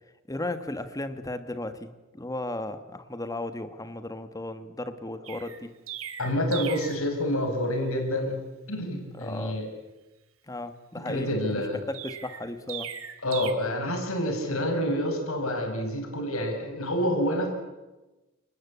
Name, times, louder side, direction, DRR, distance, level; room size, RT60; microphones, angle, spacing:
voice 1, 0.3-1.9 2.1-5.7 9.1-9.6 10.5-11.3 11.9-12.9, left 2 dB, 15° left, 10 dB, 1.4 m, -35 dB
Chirp tweet, 5.2-7.0 11.9-13.5, right 9 dB, 80° right, 2.2 m, -38 dB
voice 2, 6.2-8.4 8.7-9.7 11.1-11.8 13.2-17.5, equal, 80° left, 4 dB, 5.5 m, -28 dB
29.5 x 19.5 x 8.4 m, 1.1 s
head